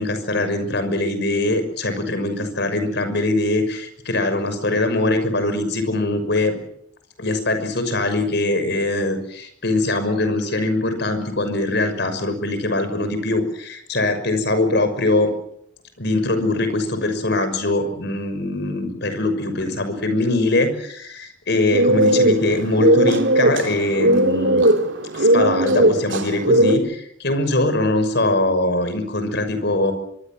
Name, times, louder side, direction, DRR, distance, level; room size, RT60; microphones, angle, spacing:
voice 1, 0.0-6.6 7.2-15.3 16.0-24.6 25.1-29.9, left 2 dB, 60° left, 9 dB, 6.0 m, -22 dB
sound 1, 21.7-26.7, right 1 dB, 70° right, 2.9 m, -17 dB
25.0 x 23.5 x 7.7 m, 0.71 s
head